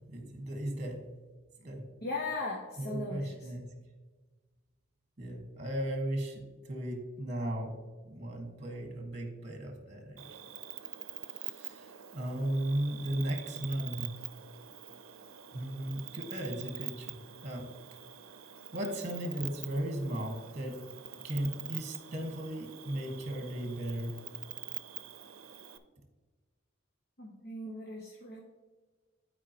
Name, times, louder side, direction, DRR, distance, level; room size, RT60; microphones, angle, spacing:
voice 1, 0.1-1.0 1.6-1.8 2.8-3.7 5.2-7.7 8.0-10.4 11.4-14.1 15.5-17.7 18.7-20.8 21.2-24.2, right 1 dB, 35° right, 3 dB, 1.4 m, -36 dB
voice 2, 2.0-3.5 27.2-28.4, left 2 dB, 50° left, -2 dB, 1.2 m, -38 dB
Cricket, 10.2-25.8, right 12 dB, 85° right, 0.6 m, -45 dB
12.0 x 4.8 x 2.9 m, 1.3 s
head